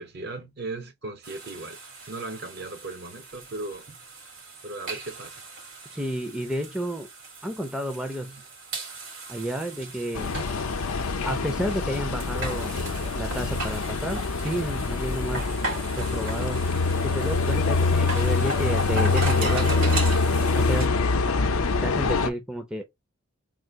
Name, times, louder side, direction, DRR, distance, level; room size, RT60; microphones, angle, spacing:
voice 1, 0.0-1.8 2.1-3.9 4.6-5.4 22.2-22.4, right 2 dB, 50° right, 0.8 m, -37 dB
sound 1, 1.2-20.9, right 2 dB, 70° right, 2.4 m, -38 dB
voice 2, 5.9-7.1 7.4-8.4 9.3-10.3 11.2-12.8 13.1-15.6 15.9-16.6 17.0-20.0 20.5-20.9 21.8-22.8, right 1 dB, 5° right, 0.5 m, -31 dB
sound 2, 10.2-22.3, left 3 dB, 85° left, 0.6 m, -25 dB
3.7 x 2.4 x 4.5 m
head